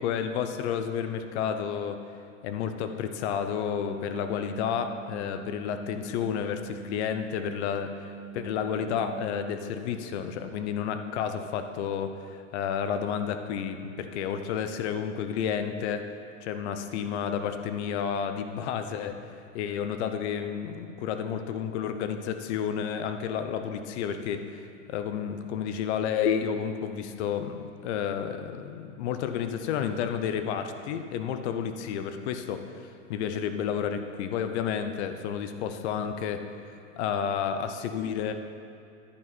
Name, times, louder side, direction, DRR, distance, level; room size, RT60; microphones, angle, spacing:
voice 1, 0.0-2.0 2.4-7.9 8.3-16.1 16.4-19.2 19.5-36.4 37.0-38.3, left 8 dB, 60° left, 8 dB, 0.9 m, -31 dB
sound 1, 3.7-9.6, right 8 dB, 25° right, 2.6 m, -44 dB
11.0 x 9.1 x 4.2 m, 2.6 s
supercardioid pair, 130°, 38 cm